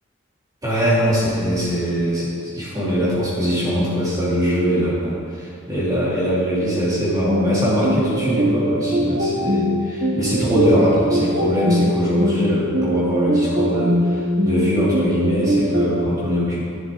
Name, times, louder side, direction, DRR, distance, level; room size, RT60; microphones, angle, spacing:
voice 1, 0.6-16.7, equal, 15° right, -9 dB, 2.7 m, -21 dB
sound 1, 7.3-16.0, equal, 40° right, 0.9 m, -22 dB
11.5 x 10.5 x 3.7 m, 2.4 s
head